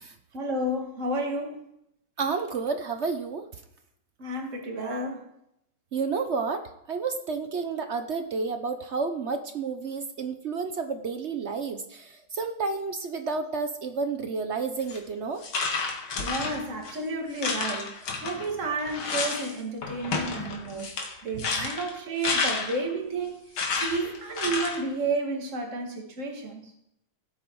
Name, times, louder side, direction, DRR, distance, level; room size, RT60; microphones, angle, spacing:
voice 1, 0.3-1.6 4.2-5.3 16.2-20.9 21.2-23.4 23.8-26.7, right 2 dB, 40° right, 2 dB, 2.3 m, -31 dB
voice 2, 2.2-3.5 5.9-15.4 21.4-21.5, right 4 dB, 60° right, 7 dB, 0.7 m, -31 dB
sound 1, 14.8-15.0 15.4-17.0 17.4-19.5 19.8-22.9 23.6-24.8, left 4 dB, 85° left, 2.5 m, -31 dB
17.0 x 8.2 x 4.7 m, 0.79 s
omnidirectional pair, 2.2 m